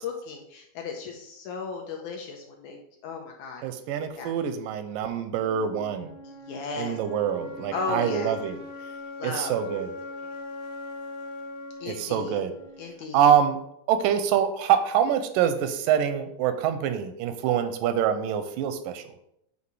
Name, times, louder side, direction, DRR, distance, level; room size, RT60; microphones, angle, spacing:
voice 1, 0.0-2.8 3.0-3.6 4.1-4.3 6.5-7.0 7.7-8.3 9.2-9.6 11.8-12.4 12.8-13.3, left 4 dB, 80° left, 1 dB, 1.8 m, -35 dB
voice 2, 3.6-6.1 6.8-8.6 9.2-9.9 11.9-12.5 13.1-13.6 13.9-19.0, right 9 dB, 85° right, 10 dB, 2.2 m, -25 dB
sound 1, 5.4-13.3, left 2 dB, 60° left, 1.4 m, -41 dB
8.0 x 2.7 x 4.7 m, 0.76 s
omnidirectional pair, 3.9 m